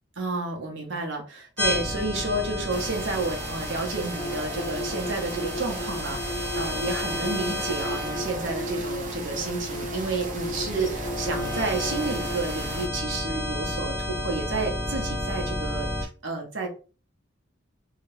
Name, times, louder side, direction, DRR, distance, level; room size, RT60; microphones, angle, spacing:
voice 1, 0.2-16.7, right 3 dB, 85° right, 1 dB, 0.9 m, -31 dB
sound 1, 1.6-16.0, left 1 dB, 5° left, 0.9 m, -32 dB
sound 2, 2.7-12.9, right 3 dB, 45° right, 0.7 m, -38 dB
sound 3, 4.2-12.4, left 1 dB, 45° left, 0.5 m, -35 dB
2.8 x 2.4 x 3.2 m, 0.37 s
head